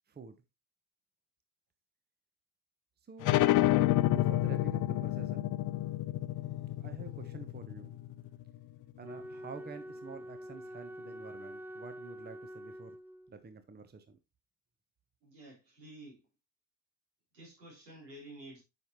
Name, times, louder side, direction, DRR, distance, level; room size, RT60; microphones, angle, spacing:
voice 1, 3.1-3.4 4.0-5.5 6.8-8.0 9.0-13.0 13.3-14.2, right 5 dB, 20° right, 0.9 m, -48 dB
sound 1, 3.2-8.5, left 14 dB, 40° left, 0.5 m, -29 dB
Wind instrument woodwind instrument, 9.0-13.4, equal, 5° right, 0.5 m, -46 dB
voice 2, 15.2-16.3 17.3-18.6, right 1 dB, 75° right, 3.6 m, -51 dB
9.2 x 5.8 x 2.9 m
figure-of-eight pair, 40°, 48 cm